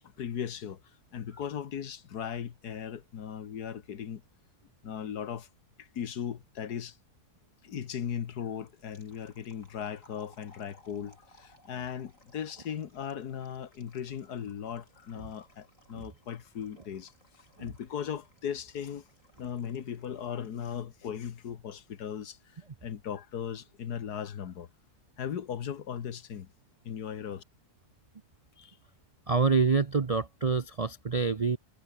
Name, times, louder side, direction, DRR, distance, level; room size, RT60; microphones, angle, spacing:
voice 1, 0.2-0.8 1.1-4.2 4.8-5.5 5.8-7.0 7.6-17.1 17.6-19.0 19.4-22.4 22.8-24.7 25.2-26.5 26.8-27.4, left 8 dB, 75° left, 1.8 m, -37 dB
sound 1, 8.3-20.9, left 1 dB, 50° left, 8.3 m, -62 dB
voice 2, 29.3-31.6, right 4 dB, 40° right, 0.5 m, -26 dB
omnidirectional pair, 1.7 m